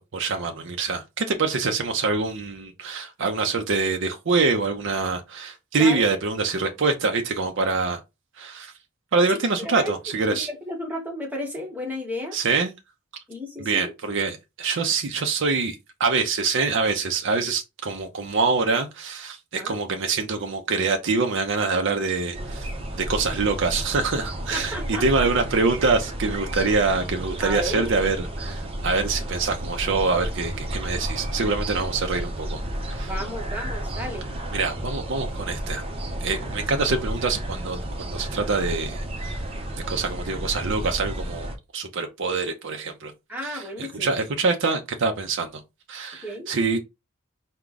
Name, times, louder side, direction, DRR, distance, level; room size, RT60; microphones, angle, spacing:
voice 1, 0.0-8.0 8.4-8.7 9.1-10.5 12.3-12.7 13.6-22.7 23.0-32.6 32.9-33.1 34.5-35.8 36.2-39.4 39.9-43.1 43.4-43.6 43.9-45.6 45.9-46.8, right 4 dB, 65° right, 0.6 m, -25 dB
voice 2, 5.7-6.1 9.3-10.0 10.3-12.4 13.3-13.9 19.5-19.8 24.5-25.3 27.4-27.9 33.0-34.3 43.3-44.2 46.2-46.5, left 1 dB, 10° right, 1.1 m, -33 dB
sound 1, 22.3-41.6, right 1 dB, 30° right, 0.8 m, -32 dB
4.7 x 2.2 x 3.8 m
head